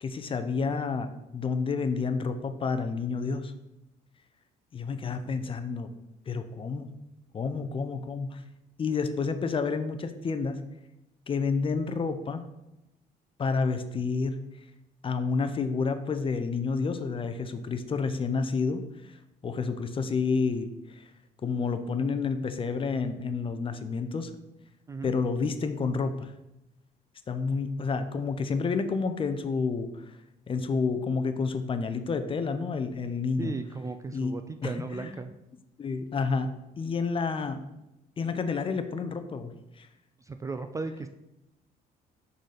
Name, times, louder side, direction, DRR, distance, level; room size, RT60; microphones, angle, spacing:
voice 1, 0.0-3.5 4.7-5.9 6.3-6.9 7.3-8.4 8.8-10.6 11.3-12.4 13.4-14.4 15.0-19.2 19.4-21.1 21.4-24.3 25.0-26.3 27.3-30.0 30.5-33.5 34.1-35.1 35.8-37.6 38.2-39.9, left 4 dB, 30° left, 9 dB, 0.6 m, -30 dB
voice 2, 33.4-35.3 40.2-41.1, right 3 dB, 20° right, 8 dB, 0.3 m, -36 dB
6.4 x 4.0 x 5.0 m, 0.93 s
cardioid pair, 110°, 17 cm